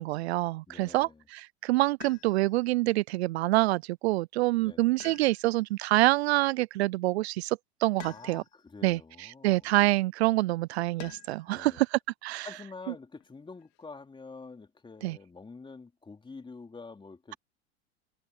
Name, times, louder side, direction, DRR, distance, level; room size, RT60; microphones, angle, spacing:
voice 1, 0.0-8.4 8.8-12.5 15.0-15.2, right 19 dB, 70° right, 0.5 m, -26 dB
voice 2, 0.7-1.2 4.6-5.0 8.1-9.7 11.5-11.8 12.4-17.4, left 4 dB, 15° left, 3.7 m, -47 dB
sound 1, 2.0-2.6 5.0-5.8 8.0-8.7 11.0-11.5 13.2-13.8, left 19 dB, 50° left, 3.1 m, -49 dB
hypercardioid pair, 95°, 34 cm